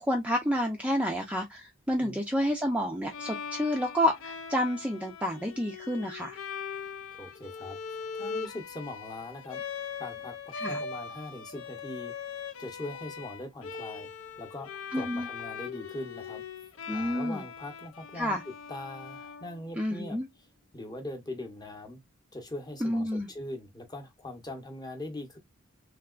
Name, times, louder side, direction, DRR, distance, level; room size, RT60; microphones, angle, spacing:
voice 1, 0.0-6.4 10.6-10.8 14.9-15.3 16.9-17.4 18.2-18.4 19.8-20.3 22.8-23.3, equal, 5° right, 0.4 m, -29 dB
Bowed string instrument, 3.1-20.0, left 6 dB, 85° left, 0.5 m, -40 dB
voice 2, 7.1-7.8 8.1-9.6 10.0-12.1 12.6-14.1 14.4-16.4 16.9-20.2 20.7-22.0 22.3-25.4, left 1 dB, 20° left, 0.8 m, -41 dB
3.4 x 2.8 x 2.4 m
head